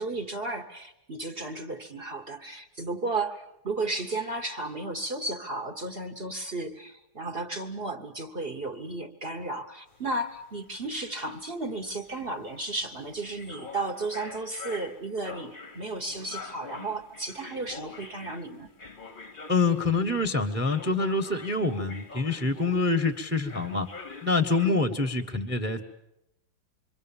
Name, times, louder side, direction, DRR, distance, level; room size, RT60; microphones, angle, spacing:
voice 1, 0.0-18.7 24.6-24.9, right 2 dB, 35° right, 4 dB, 1.0 m, -34 dB
sound 1, 9.9-20.1 20.6-23.1 23.5-24.7, left 4 dB, 30° left, 1.0 m, -45 dB
voice 2, 19.5-23.9 24.2-25.8, left 3 dB, 5° right, 9 dB, 1.0 m, -26 dB
26.5 x 24.0 x 7.3 m, 0.85 s
omnidirectional pair, 2.2 m